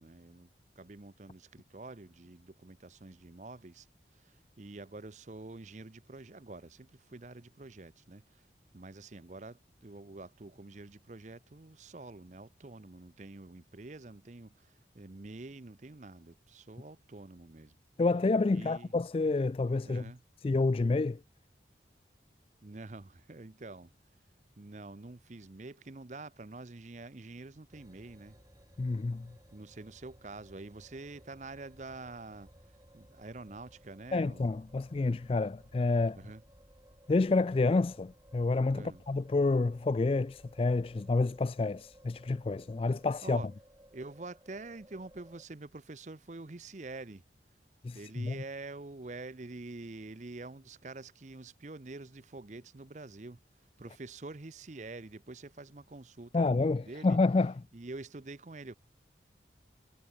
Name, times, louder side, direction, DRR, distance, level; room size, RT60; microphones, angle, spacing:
voice 1, 0.0-3.9 4.1-8.4 8.7-17.8 18.5-18.9 19.8-20.2 22.6-23.9 24.6-28.4 29.5-32.5 32.9-34.5 36.1-36.4 38.7-39.0 43.2-43.5 43.9-47.2 47.9-53.4 53.8-57.2 57.7-58.8, right 2 dB, 40° right, 0.7 m, -47 dB
voice 2, 18.0-20.0 20.4-21.2 28.8-29.3 34.1-36.2 37.1-43.4 47.8-48.3 56.3-57.5, left 3 dB, 30° left, 0.3 m, -29 dB
sound 1, 27.7-45.5, equal, 20° right, 3.5 m, -59 dB
head